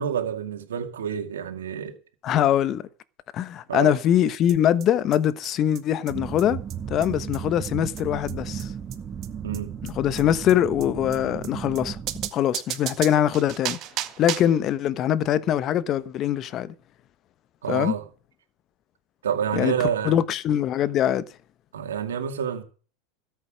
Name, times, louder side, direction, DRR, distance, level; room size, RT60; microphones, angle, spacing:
voice 1, 0.0-2.0 3.7-4.0 9.4-9.7 17.6-18.1 19.2-20.1 21.7-22.6, right 8 dB, 85° right, 2.2 m, -28 dB
voice 2, 2.2-2.9 3.3-6.6 6.9-8.7 9.8-12.0 12.3-13.8 14.2-16.7 17.7-17.9 19.5-19.7 20.0-21.2, left 10 dB, 45° left, 1.0 m, -23 dB
sound 1, 4.5-4.6 4.8-4.9 5.1-5.2 5.4-5.5 5.7-5.8 6.1-6.2 6.4-6.5 6.7-6.8 7.0-7.1 7.3-7.4 7.6-7.7 8.0-8.1 8.3-8.4 8.6-8.7 8.9-9.0 9.2-9.3 9.5-9.6 9.8-9.9 10.2-10.3 10.5-10.6 10.8-10.9 11.1-11.2 11.4-11.5 11.7-11.8 12.1-14.6, right 12 dB, 45° right, 1.7 m, -33 dB
sound 2, 6.1-12.3, right 8 dB, 30° right, 1.2 m, -35 dB
13.5 x 8.4 x 6.2 m
hypercardioid pair, 100°, 0 cm